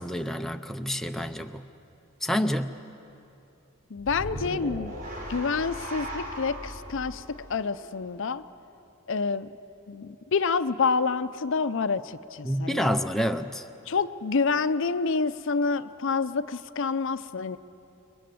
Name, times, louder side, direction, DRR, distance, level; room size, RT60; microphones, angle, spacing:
voice 1, 0.0-1.6 2.2-2.7 12.4-13.6, equal, ahead, 5 dB, 0.6 m, -28 dB
voice 2, 3.9-5.0 5.3-8.4 9.1-9.5 9.9-12.9 13.9-17.6, left 4 dB, 60° left, 13 dB, 0.6 m, -28 dB
sound 1, 4.0-8.3, equal, 40° right, 6.0 m, -38 dB
29.0 x 21.0 x 7.7 m, 2.8 s
head